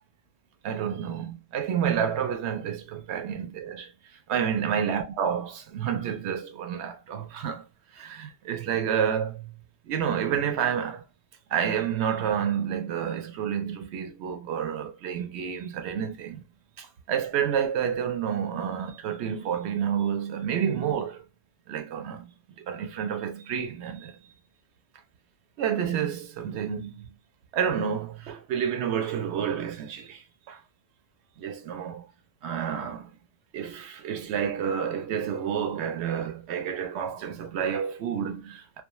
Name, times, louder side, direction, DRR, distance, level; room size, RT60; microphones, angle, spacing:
voice 1, 0.6-7.7 7.9-11.0 11.5-16.4 16.8-21.3 21.7-22.3 22.6-24.2 25.6-27.2 27.5-30.6 31.4-32.1 32.4-33.1 33.5-38.8, right 8 dB, 65° right, 0.8 m, -29 dB
2.3 x 2.3 x 2.9 m
omnidirectional pair, 1.3 m